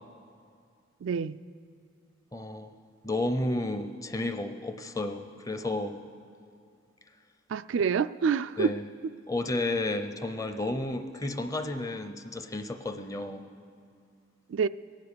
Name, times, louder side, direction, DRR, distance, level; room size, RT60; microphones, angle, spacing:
voice 1, 1.0-1.4 7.5-8.7 14.5-14.7, right 6 dB, 90° right, 13 dB, 0.4 m, -27 dB
voice 2, 2.3-2.7 3.0-6.0 8.6-8.8 9.3-13.5, left 2 dB, 20° left, 9 dB, 0.7 m, -32 dB
23.0 x 9.2 x 6.8 m, 2.3 s
head